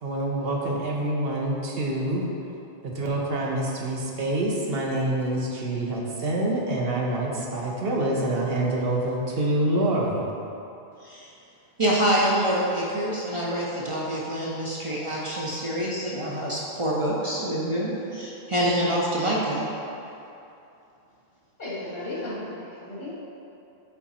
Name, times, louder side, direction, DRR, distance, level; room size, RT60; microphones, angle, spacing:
voice 1, 0.0-2.2 2.8-10.2, right 1 dB, 70° right, -2 dB, 1.0 m, -26 dB
voice 2, 11.8-19.6, right 1 dB, 35° right, -5 dB, 0.7 m, -26 dB
voice 3, 21.6-23.1, left 1 dB, 65° left, -7 dB, 1.8 m, -34 dB
6.9 x 3.5 x 4.2 m, 2.8 s
omnidirectional pair, 1.0 m